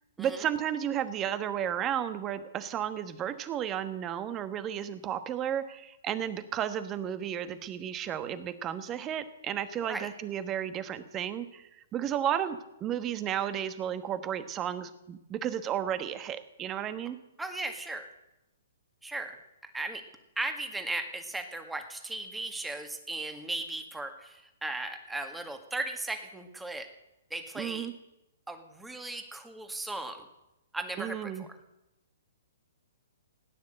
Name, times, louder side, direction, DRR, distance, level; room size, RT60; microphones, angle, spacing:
voice 1, 0.2-17.2 27.5-27.9 31.0-31.5, right 10 dB, 25° right, 11 dB, 1.2 m, -33 dB
voice 2, 17.4-18.1 19.0-19.4 19.6-20.0 20.4-26.9 27.3-27.9 28.5-30.3 30.7-31.5, right 2 dB, 5° right, 6 dB, 1.8 m, -37 dB
16.5 x 9.8 x 7.8 m, 0.93 s
hypercardioid pair, 130°, 0 cm